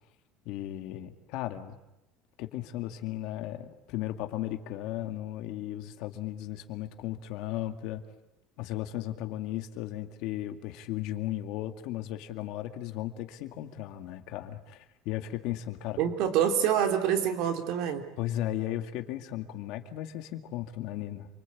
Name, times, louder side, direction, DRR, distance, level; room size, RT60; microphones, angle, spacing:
voice 1, 0.5-1.8 2.4-8.0 8.6-16.0 18.2-21.3, left 13 dB, 55° left, 7 dB, 2.1 m, -35 dB
voice 2, 16.0-18.1, right 9 dB, 60° right, 6 dB, 3.1 m, -26 dB
28.5 x 24.0 x 8.5 m, 0.94 s
cardioid pair, 170°, 0 cm